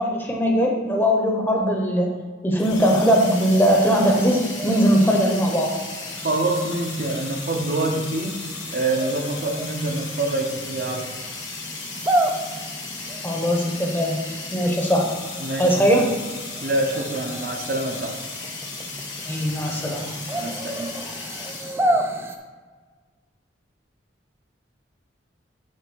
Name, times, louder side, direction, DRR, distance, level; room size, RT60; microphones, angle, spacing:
voice 1, 0.0-2.1 2.4-5.7 13.2-14.2 14.5-15.1 15.6-16.0 19.3-20.0, equal, 10° left, -1 dB, 0.9 m, -20 dB
sound 1, 2.6-21.8, left 4 dB, 80° left, 1.4 m, -36 dB
sound 2, 3.1-22.4, right 1 dB, 15° right, 0.4 m, -32 dB
voice 2, 6.2-8.4 8.7-11.1 15.4-16.0 16.6-18.2 20.3-20.9, right 2 dB, 50° right, 2 dB, 0.8 m, -26 dB
7.5 x 3.3 x 6.2 m, 1.4 s
head